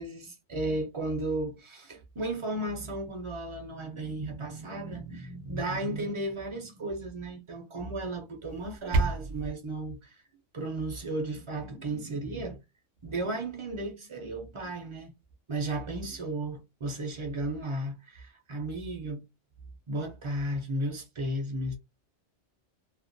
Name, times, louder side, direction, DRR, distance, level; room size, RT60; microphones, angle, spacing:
voice 1, 0.0-10.2 10.5-12.6 13.0-15.1 15.5-19.2 19.9-21.8, right 2 dB, 40° right, 0.4 m, -34 dB
sound 1, 8.5-9.5, right 3 dB, 70° right, 0.9 m, -29 dB
2.4 x 2.1 x 2.6 m
omnidirectional pair, 1.3 m